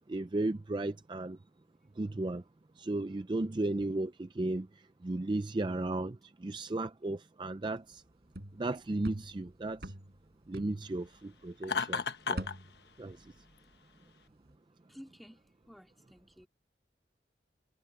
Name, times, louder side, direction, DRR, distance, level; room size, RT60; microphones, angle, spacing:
voice 1, 0.1-1.4 2.0-2.4 2.8-8.0 8.5-9.9 10.5-12.5 13.0-13.3, right 2 dB, 25° right, 0.4 m, -35 dB
sound 1, 7.9-11.7 12.0-14.0 14.3-14.6, right 1 dB, 65° right, 4.2 m, -46 dB
Laughter, 11.6-12.6, left 5 dB, 70° left, 1.2 m, -32 dB
voice 2, 14.9-15.4 15.7-16.5, equal, ahead, 2.5 m, -53 dB
head